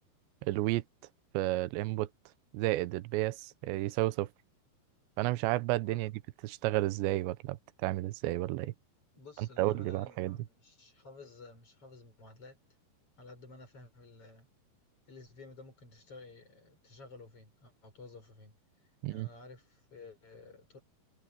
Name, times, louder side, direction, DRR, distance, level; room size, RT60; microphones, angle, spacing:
voice 1, 0.4-0.8 1.3-2.1 2.5-4.3 5.2-6.1 6.4-8.7 9.4-10.4 19.0-19.3, right 17 dB, 85° right, 3.0 m, -31 dB
voice 2, 5.8-6.1 9.2-12.6 13.2-14.5 15.1-18.6 19.1-20.8, left 3 dB, 30° left, 7.1 m, -53 dB
omnidirectional pair, 5.0 m